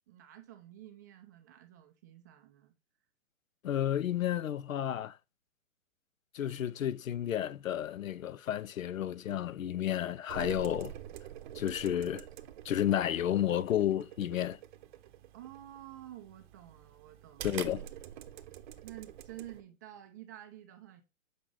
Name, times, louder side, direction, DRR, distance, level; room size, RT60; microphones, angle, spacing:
voice 1, 0.1-2.7 15.3-17.6 18.8-21.0, right 13 dB, 15° right, 0.4 m, -50 dB
voice 2, 3.6-5.2 6.3-10.9 11.5-12.3 12.6-14.6 17.4-17.8, left 11 dB, 80° left, 0.6 m, -31 dB
sound 1, 10.3-19.6, right 11 dB, 40° right, 0.8 m, -47 dB
7.5 x 5.2 x 3.8 m
hypercardioid pair, 130°, 39 cm